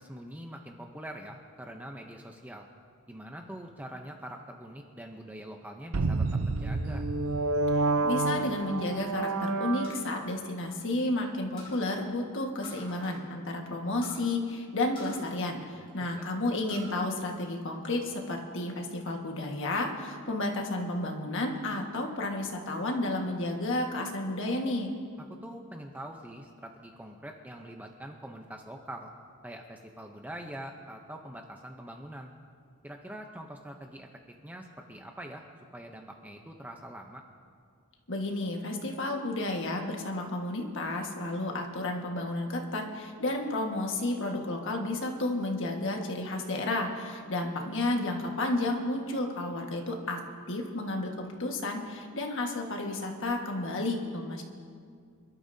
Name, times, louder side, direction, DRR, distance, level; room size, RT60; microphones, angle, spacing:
voice 1, 0.0-2.7 3.1-7.1 15.7-16.2 25.4-29.1 29.4-32.3 32.8-34.1 34.4-35.4 35.7-37.2, right 1 dB, 5° right, 2 dB, 0.6 m, -44 dB
sound 1, 5.9-10.4, right 3 dB, 70° right, 0.6 m, -29 dB
voice 2, 7.7-24.9 38.1-50.2 50.5-54.4, left 2 dB, 60° left, 2 dB, 1.6 m, -32 dB
sound 2, 9.8-11.2 11.6-11.9 12.6-13.2 13.5-13.6 14.0-14.3 14.9-16.1 16.4-16.9 17.4-18.1, left 2 dB, 25° left, 4.0 m, -48 dB
27.0 x 12.5 x 2.7 m, 2.2 s
head